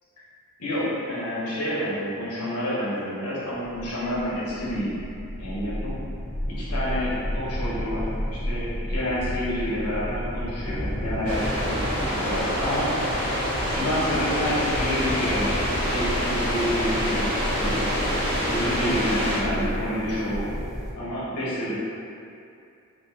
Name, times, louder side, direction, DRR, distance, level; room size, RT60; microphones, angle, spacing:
voice 1, 0.6-4.9 5.4-6.0 6.5-8.1 8.3-12.8 13.6-17.9 18.5-20.5 20.9-21.7, equal, 90° left, -8 dB, 1.1 m, -29 dB
sound 1, 3.6-20.9, equal, 15° left, 0.3 m, -32 dB
sound 2, 11.2-19.4, equal, 25° right, 1.2 m, -27 dB
3.9 x 2.8 x 2.8 m, 2.5 s
head